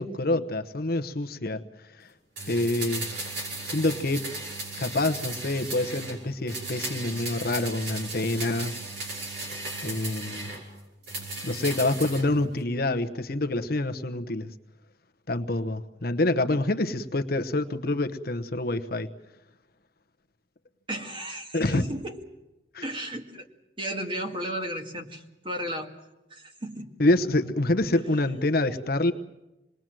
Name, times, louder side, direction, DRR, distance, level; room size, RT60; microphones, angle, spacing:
voice 1, 0.0-1.6 2.0-2.1 2.5-3.1 3.7-4.3 4.8-8.7 9.8-10.5 11.4-14.5 15.3-19.1 21.5-21.8 22.7-22.8 27.0-29.1, left 2 dB, 55° left, 7 dB, 1.0 m, -26 dB
sound 1, 2.4-6.2 6.5-10.6 11.0-12.3 12.6-12.7, right 2 dB, 65° right, 5.6 m, -36 dB
voice 2, 20.9-22.2 22.8-23.4 23.8-25.9 26.3-26.9 28.7-28.8, right 1 dB, 25° right, 4 dB, 2.0 m, -34 dB
27.0 x 20.5 x 7.7 m, 0.96 s
head